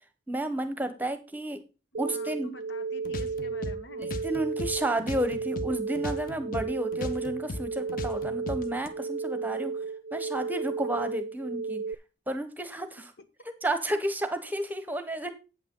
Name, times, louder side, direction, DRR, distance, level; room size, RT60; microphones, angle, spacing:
voice 1, 0.3-1.6 2.0-2.5 4.0-9.7 10.1-11.8 12.3-13.0 13.6-15.3, right 1 dB, 10° right, 9 dB, 1.1 m, -31 dB
sound 1, 1.9-11.9, right 5 dB, 75° right, 0.5 m, -34 dB
voice 2, 2.1-4.1 13.0-13.3, equal, 70° left, 8 dB, 1.6 m, -48 dB
sound 2, 3.0-5.7 6.0-8.9, left 1 dB, 45° left, 1.0 m, -37 dB
8.9 x 8.6 x 3.8 m, 0.30 s
head